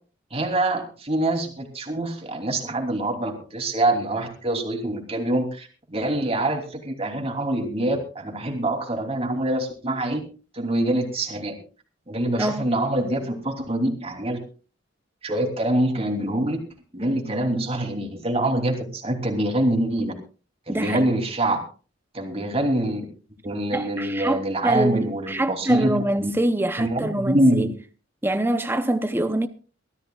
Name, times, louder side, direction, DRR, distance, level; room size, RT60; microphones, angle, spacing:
voice 1, 0.3-10.2 10.5-11.5 12.1-14.4 15.2-16.6 16.9-20.1 20.7-21.6 22.1-23.0 23.4-26.3 26.8-27.7, right 1 dB, 30° right, 3.0 m, -25 dB
voice 2, 12.4-12.7 20.7-21.1 23.7-27.7 28.2-29.5, right 1 dB, 10° right, 0.7 m, -25 dB
23.0 x 14.0 x 2.4 m
head